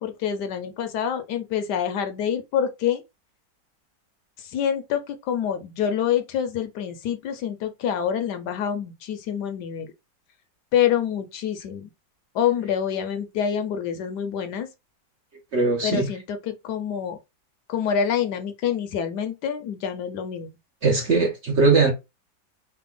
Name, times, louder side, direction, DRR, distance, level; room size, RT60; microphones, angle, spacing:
voice 1, 0.0-3.0 4.4-9.9 10.7-11.9 12.3-14.7 15.8-17.2 17.7-20.5, left 8 dB, 75° left, 1.2 m, -26 dB
voice 2, 15.5-16.1 20.8-21.9, right 3 dB, 55° right, 0.8 m, -20 dB
3.3 x 2.1 x 3.6 m
omnidirectional pair, 1.9 m